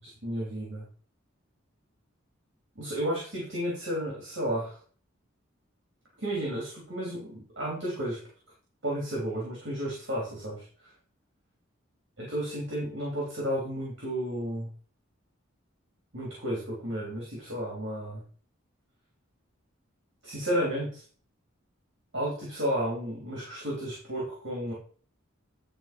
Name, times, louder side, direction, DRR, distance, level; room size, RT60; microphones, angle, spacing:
voice 1, 0.0-0.8 2.8-4.8 6.2-8.2 8.8-10.6 12.2-14.7 16.1-18.2 20.2-21.0 22.1-24.7, equal, 60° right, -3 dB, 3.3 m, -32 dB
11.0 x 3.9 x 5.2 m, 0.42 s
head